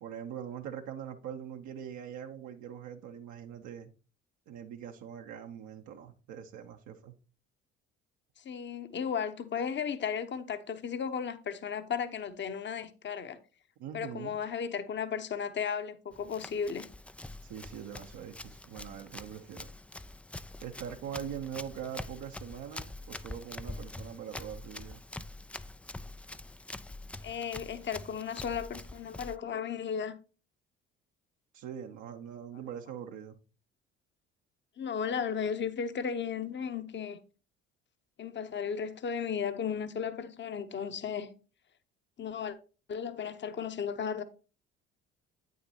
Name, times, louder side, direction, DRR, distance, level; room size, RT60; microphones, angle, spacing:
voice 1, 0.0-3.9 4.5-7.1 13.8-14.4 17.4-19.7 20.6-25.0 31.5-33.4, right 9 dB, 60° right, 0.9 m, -42 dB
voice 2, 8.4-13.4 13.9-16.9 27.2-30.2 34.8-37.2 38.2-41.3 42.2-42.6 42.9-44.2, left 7 dB, 35° left, 0.9 m, -35 dB
Run, 16.1-29.4, left 2 dB, 5° left, 0.3 m, -45 dB
8.7 x 6.6 x 2.9 m
hypercardioid pair, 55°, 32 cm